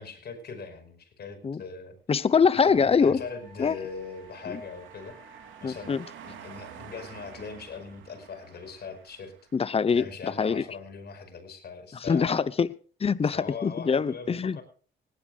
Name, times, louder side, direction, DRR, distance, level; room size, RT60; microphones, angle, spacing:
voice 1, 0.0-1.9 2.6-5.2 5.6-5.9 6.2-9.3 9.9-12.4 13.3-14.6, left 5 dB, 55° left, 5.3 m, -40 dB
voice 2, 2.1-3.2 3.6-3.8 4.5-4.6 5.6-6.0 9.5-10.6 12.0-12.7 13.0-14.6, left 5 dB, 30° left, 0.9 m, -24 dB
Wind instrument woodwind instrument, 2.7-6.9, right 4 dB, 5° left, 6.9 m, -56 dB
sound 1, 2.9-9.7, right 8 dB, 80° right, 3.1 m, -49 dB
19.5 x 18.0 x 2.5 m
cardioid pair, 90°, 20 cm